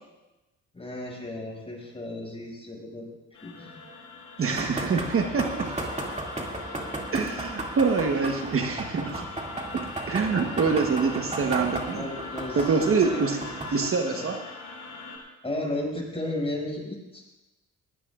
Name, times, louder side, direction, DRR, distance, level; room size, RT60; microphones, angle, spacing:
voice 1, 0.7-3.7 11.5-11.7 11.9-13.2 13.7-14.2 15.4-17.2, left 1 dB, 20° left, -2 dB, 6.3 m, -35 dB
sound 1, 3.3-15.2, left 4 dB, 90° left, 6.4 m, -42 dB
voice 2, 4.4-5.7 7.1-9.3 9.7-12.1 12.6-13.4 13.7-14.4, right 5 dB, 45° right, 3 dB, 1.3 m, -25 dB
sound 2, 4.5-13.9, right 2 dB, 20° right, 2.6 m, -35 dB
20.5 x 16.5 x 2.5 m, 1.0 s
cardioid pair, 90°, 30 cm